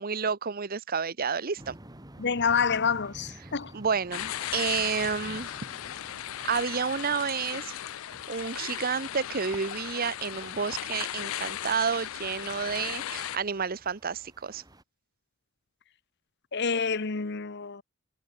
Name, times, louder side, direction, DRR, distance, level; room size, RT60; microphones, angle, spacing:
voice 1, 0.0-1.8 3.7-5.5 6.4-7.8 8.3-14.6, right 6 dB, 45° right, 0.9 m, -30 dB
sound 1, 1.6-14.8, right 1 dB, 20° right, 2.5 m, -51 dB
voice 2, 2.2-3.7 16.5-17.8, left 5 dB, 55° left, 1.1 m, -28 dB
sound 2, 4.1-13.4, left 12 dB, 80° left, 0.4 m, -37 dB
head